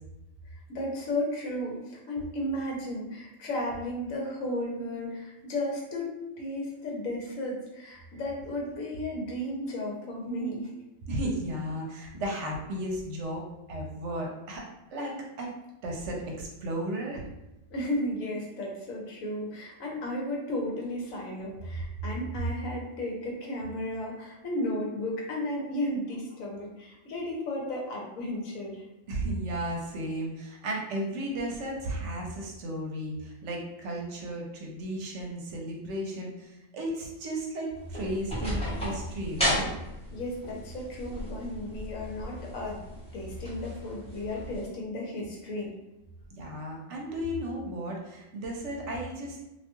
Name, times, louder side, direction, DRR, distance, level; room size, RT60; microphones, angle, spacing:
voice 1, 0.7-6.1 6.4-10.7 17.7-28.8 40.1-42.8 43.1-45.7, left 1 dB, 85° left, -1 dB, 1.1 m, -34 dB
voice 2, 11.1-14.6 14.9-15.5 15.8-17.3 29.1-39.7 46.4-49.4, right 1 dB, 65° right, -1 dB, 0.9 m, -34 dB
sound 1, 37.7-44.6, equal, 5° left, 0.6 m, -35 dB
2.6 x 2.2 x 2.9 m, 0.94 s
omnidirectional pair, 1.4 m